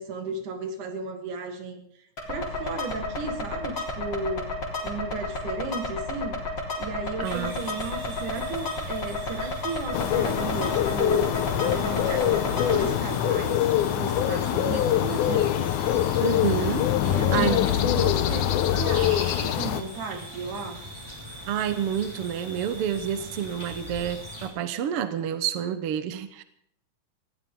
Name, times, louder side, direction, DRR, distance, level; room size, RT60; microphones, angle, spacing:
voice 1, 0.0-1.8 2.3-4.5 4.8-6.4 6.8-11.3 11.6-15.7 17.0-20.8, right 3 dB, 80° right, 5 dB, 3.4 m, -34 dB
sound 1, 2.2-12.8, left 2 dB, 35° left, 4.2 m, -32 dB
sound 2, 7.2-24.5, equal, 10° right, 5.5 m, -41 dB
voice 2, 7.2-7.6 16.2-16.9 17.3-17.6 21.5-26.4, right 9 dB, 60° right, 11 dB, 1.6 m, -28 dB
sound 3, 9.9-19.8, left 11 dB, 85° left, 2.4 m, -24 dB
19.5 x 16.0 x 3.8 m, 0.70 s
omnidirectional pair, 3.5 m